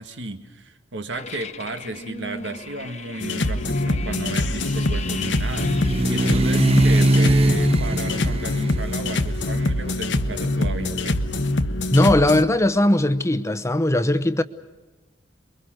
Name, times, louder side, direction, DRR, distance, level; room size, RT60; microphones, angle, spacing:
voice 1, 0.0-11.3, right 2 dB, 80° right, 1.8 m, -33 dB
sound 1, 1.1-7.1, left 4 dB, 40° left, 1.1 m, -38 dB
sound 2, 3.2-12.4, left 2 dB, 80° left, 1.1 m, -24 dB
sound 3, 3.6-11.6, right 1 dB, 35° right, 0.9 m, -23 dB
voice 2, 11.9-14.4, left 1 dB, 15° left, 0.9 m, -19 dB
28.0 x 22.5 x 6.4 m
head